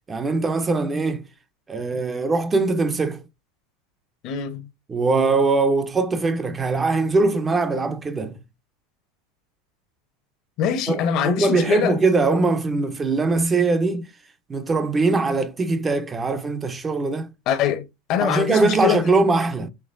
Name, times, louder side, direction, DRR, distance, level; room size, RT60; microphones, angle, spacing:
voice 1, 0.1-1.2 1.7-3.2 4.9-8.4 10.9-14.0 14.5-17.3 18.2-19.7, right 3 dB, 20° right, 0.5 m, -21 dB
voice 2, 4.2-4.7 10.6-12.0 17.5-19.0, left 8 dB, 50° left, 0.9 m, -23 dB
5.9 x 2.9 x 2.5 m
supercardioid pair, 130°, 0 cm